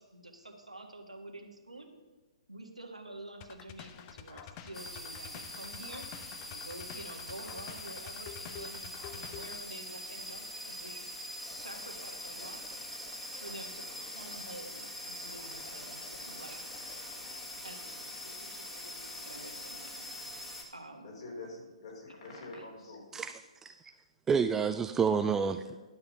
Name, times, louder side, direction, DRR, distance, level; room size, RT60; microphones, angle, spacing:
voice 1, 0.0-1.9 2.5-6.1 6.5-12.6 13.4-16.7 17.6-20.1 20.7-21.2 22.1-22.3 22.5-22.6, right 2 dB, 90° right, 3 dB, 1.5 m, -48 dB
sound 1, 3.4-9.6, left 9 dB, 30° left, 0.7 m, -48 dB
sound 2, 4.7-20.6, left 1 dB, 5° left, 1.6 m, -43 dB
voice 2, 21.0-23.2 25.6-25.8, left 2 dB, 55° left, -1 dB, 3.4 m, -46 dB
voice 3, 23.1-23.9 24.3-25.8, right 6 dB, 10° right, 9 dB, 0.3 m, -29 dB
11.5 x 6.7 x 5.8 m, 1.2 s
figure-of-eight pair, 125°, 3 cm